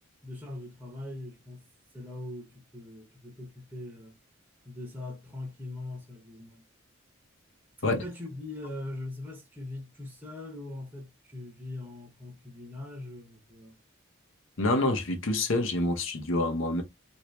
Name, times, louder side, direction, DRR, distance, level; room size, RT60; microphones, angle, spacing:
voice 1, 0.2-1.7 1.9-4.2 4.6-6.6 7.8-13.8, left 2 dB, 10° right, 0.8 m, -41 dB
voice 2, 14.6-16.8, left 2 dB, 65° left, 0.8 m, -27 dB
2.9 x 2.8 x 3.1 m
head